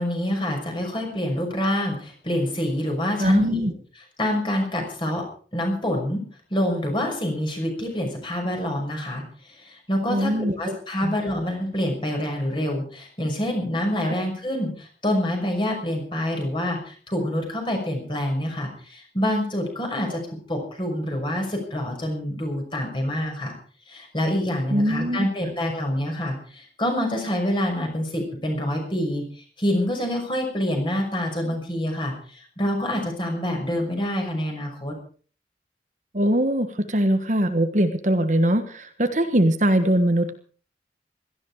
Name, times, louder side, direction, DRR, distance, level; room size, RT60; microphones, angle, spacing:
voice 1, 0.0-3.7 4.2-5.2 5.5-6.2 6.5-9.2 9.5-10.3 10.6-20.2 20.5-23.5 23.9-29.2 29.6-34.9, left 1 dB, 30° left, 2 dB, 6.2 m, -26 dB
voice 2, 3.2-3.7 10.1-11.2 24.7-25.3 36.1-40.4, right 1 dB, 45° right, 8 dB, 1.5 m, -22 dB
17.5 x 14.5 x 4.9 m, 0.42 s
head